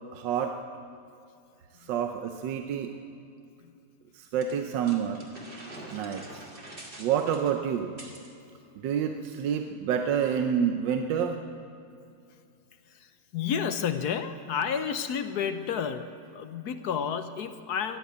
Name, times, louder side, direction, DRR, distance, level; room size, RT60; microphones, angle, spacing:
voice 1, 0.1-0.5 1.8-2.9 4.1-5.2 5.9-6.4 7.0-7.9 8.8-11.4, right 8 dB, 80° right, 5 dB, 1.4 m, -28 dB
sound 1, 4.4-8.3, right 1 dB, 30° right, 2.0 m, -45 dB
voice 2, 12.9-18.0, left 7 dB, 65° left, 9 dB, 1.2 m, -31 dB
15.0 x 11.5 x 8.0 m, 2.5 s
omnidirectional pair, 2.0 m